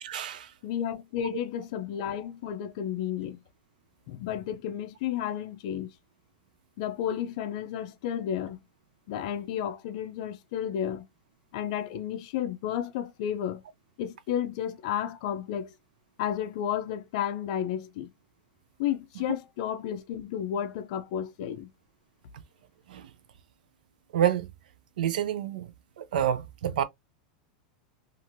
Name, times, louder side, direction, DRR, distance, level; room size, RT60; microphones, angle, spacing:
voice 1, 0.0-0.5 22.9-23.1 24.1-24.5 25.0-26.8, right 10 dB, 85° right, 0.5 m, -28 dB
voice 2, 0.6-3.4 4.1-5.9 6.8-8.6 9.1-11.0 11.5-13.6 14.0-15.7 16.2-18.1 18.8-21.7, left 10 dB, 50° left, 0.4 m, -32 dB
2.9 x 2.5 x 2.6 m
supercardioid pair, 160°, 4 cm